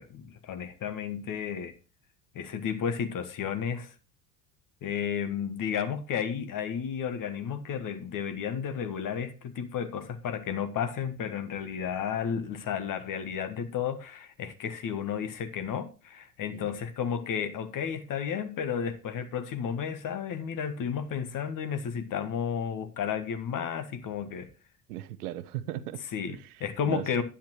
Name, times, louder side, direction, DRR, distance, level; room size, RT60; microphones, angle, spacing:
voice 1, 0.0-1.7 2.3-3.9 4.8-24.5 26.1-27.2, left 7 dB, 40° left, 1.5 m, -32 dB
voice 2, 24.9-26.0 26.3-27.1, right 13 dB, 70° right, 0.8 m, -38 dB
10.0 x 8.7 x 3.0 m
figure-of-eight pair, 65°, 48 cm